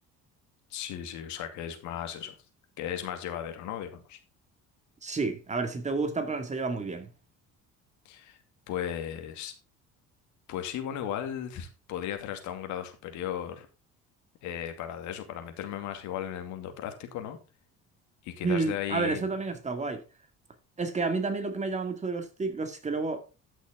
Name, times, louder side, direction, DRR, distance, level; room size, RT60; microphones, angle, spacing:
voice 1, 0.7-2.3 2.8-4.2 8.0-8.4 8.7-9.5 10.5-13.7 14.4-17.4 18.2-19.2, left 10 dB, 75° left, 2.5 m, -36 dB
voice 2, 5.0-7.1 18.4-20.0 20.8-23.2, right 4 dB, 25° right, 2.2 m, -30 dB
13.5 x 6.2 x 3.7 m
cardioid pair, 115°, 29 cm